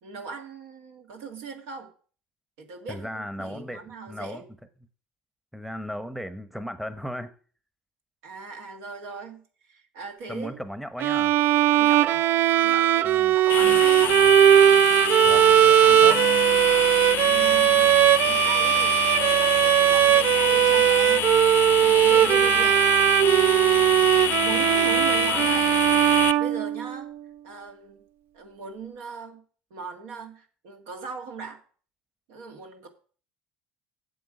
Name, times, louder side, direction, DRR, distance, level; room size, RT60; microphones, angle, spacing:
voice 1, 0.0-1.9 2.6-4.4 8.2-10.6 11.7-14.2 17.2-22.8 23.4-23.9 24.2-25.7 26.3-27.1 27.4-28.1 28.3-29.4 29.7-31.6 32.3-32.9, right 5 dB, 75° right, 4 dB, 1.8 m, -39 dB
voice 2, 2.9-3.8 4.1-4.4 5.5-7.3 10.3-11.3 13.0-13.4 15.2-16.2, equal, ahead, 11 dB, 0.9 m, -36 dB
Bowed string instrument, 11.0-27.1, right 12 dB, 60° right, 0.4 m, -19 dB
sound 1, 13.5-26.3, left 15 dB, 55° left, 0.3 m, -28 dB
7.8 x 7.3 x 5.0 m, 0.42 s
hypercardioid pair, 75°, 4 cm